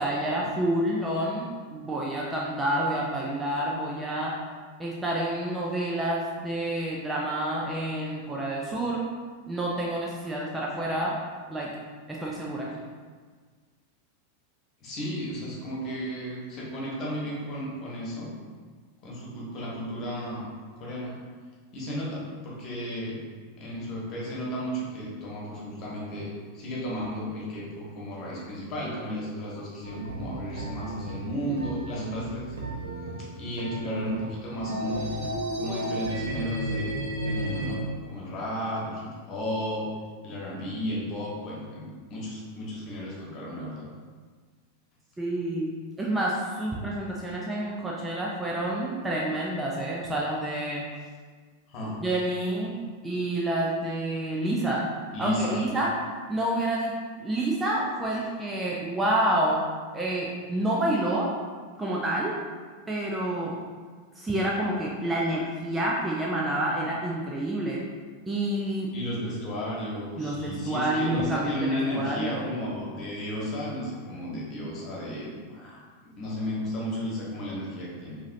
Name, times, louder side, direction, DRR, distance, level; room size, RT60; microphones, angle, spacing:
voice 1, 0.0-4.4 4.8-9.0 9.5-11.2 11.5-11.8 12.1-12.8 45.2-50.8 52.0-54.9 55.2-56.0 56.3-57.0 57.2-59.6 59.9-61.3 61.8-62.4 62.9-63.6 64.2-67.8 68.3-68.9 70.2-72.5, right 1 dB, 10° right, -4 dB, 0.5 m, -28 dB
voice 2, 14.8-18.3 19.0-20.4 20.8-21.1 21.7-23.1 23.6-32.5 33.4-35.1 35.5-37.0 37.2-39.9 40.2-43.9 51.7-52.0 55.1-55.7 68.9-75.8 76.1-78.2, equal, 35° left, -5 dB, 1.3 m, -33 dB
sound 1, 29.8-37.8, right 1 dB, 70° right, 0.7 m, -33 dB
4.8 x 2.7 x 2.7 m, 1.5 s
figure-of-eight pair, 90°, 0 cm